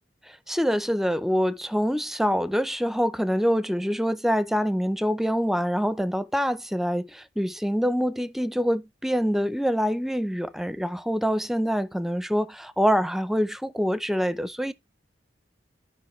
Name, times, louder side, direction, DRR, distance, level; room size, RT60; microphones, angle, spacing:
voice 1, 0.3-14.7, equal, ahead, 0.5 m, -25 dB
12.5 x 5.1 x 3.0 m
head